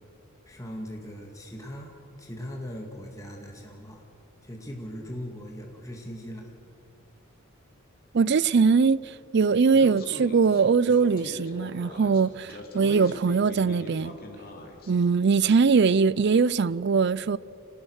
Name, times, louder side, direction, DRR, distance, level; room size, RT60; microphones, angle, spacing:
voice 1, 0.5-4.0 4.4-6.5, equal, 15° left, 2.1 m, -39 dB
voice 2, 8.1-14.1 14.9-17.4, right 5 dB, 55° right, 0.4 m, -22 dB
Speech, 9.7-14.9, left 2 dB, 45° left, 2.8 m, -41 dB
26.0 x 19.0 x 6.5 m
head